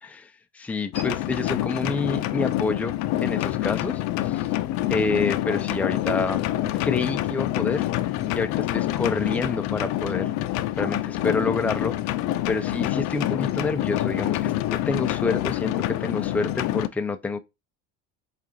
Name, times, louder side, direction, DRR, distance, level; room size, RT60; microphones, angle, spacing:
voice 1, 0.0-3.0 3.2-4.5 4.9-7.9 8.3-10.3 10.8-12.0 12.5-17.4, left 3 dB, 5° left, 0.4 m, -28 dB
sound 1, 0.9-16.9, left 14 dB, 65° left, 0.5 m, -26 dB
4.7 x 2.5 x 2.7 m
cardioid pair, 115°, 29 cm